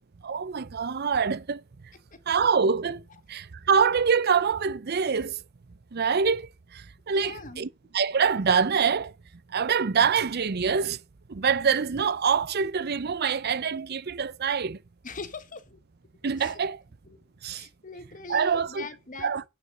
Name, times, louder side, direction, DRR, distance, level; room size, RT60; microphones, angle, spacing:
voice 1, 0.2-1.6 2.3-3.0 3.3-5.4 5.9-9.1 9.5-11.0 11.3-14.8 16.2-16.8 17.4-17.7 18.3-18.9 19.2-19.4, right 6 dB, 50° right, 0.6 m, -25 dB
voice 2, 7.1-7.6 15.0-15.8 16.4-16.6 17.1-17.2 17.5-19.3, left 4 dB, 40° left, 1.4 m, -41 dB
9.5 x 9.4 x 3.9 m
head